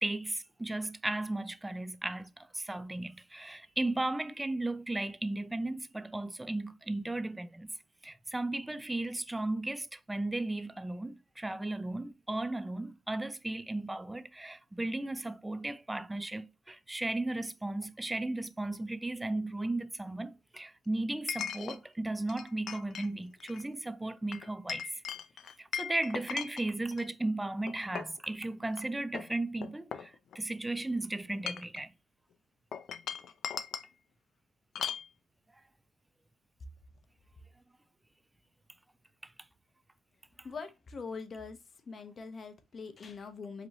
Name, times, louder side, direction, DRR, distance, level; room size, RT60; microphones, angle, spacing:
voice 1, 0.0-2.3 2.5-7.7 8.0-24.8 25.7-30.1 30.4-31.9, right 2 dB, 15° right, 0.5 m, -35 dB
Chink clink, 17.8-17.9 21.3-21.8 22.3-23.1 23.4-23.6 24.3-27.1 27.7-28.2 28.7-28.8 29.1-30.6 31.3-31.8 32.7-33.9 34.7-35.1, left 8 dB, 65° left, 0.5 m, -39 dB
voice 2, 40.4-41.6 41.9-43.7, left 4 dB, 45° left, 0.9 m, -43 dB
5.2 x 2.9 x 2.9 m
supercardioid pair, 70°, 0 cm